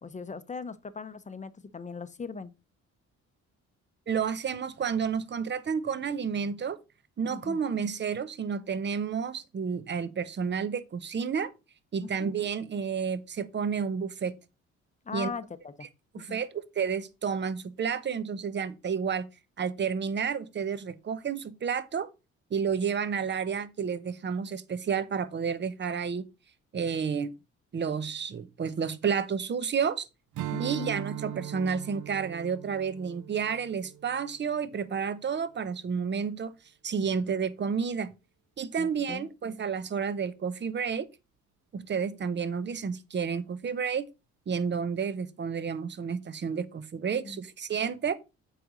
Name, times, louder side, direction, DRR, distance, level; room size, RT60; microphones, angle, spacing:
voice 1, 0.0-2.5 7.3-7.6 12.0-12.3 15.1-15.9 16.2-16.4 30.5-31.0 38.8-39.3 47.2-47.4, left 5 dB, 25° left, 0.7 m, -39 dB
voice 2, 4.1-6.8 7.2-11.5 11.9-14.3 15.1-15.3 16.1-19.3 19.6-22.1 22.5-26.3 26.7-27.4 27.7-30.1 30.6-36.5 36.8-38.1 38.6-41.1 41.7-44.1 44.5-48.1, right 6 dB, 35° right, 0.8 m, -31 dB
Strum, 30.3-35.0, right 12 dB, 75° right, 0.7 m, -40 dB
7.7 x 5.0 x 3.9 m
cardioid pair, 90°, 30 cm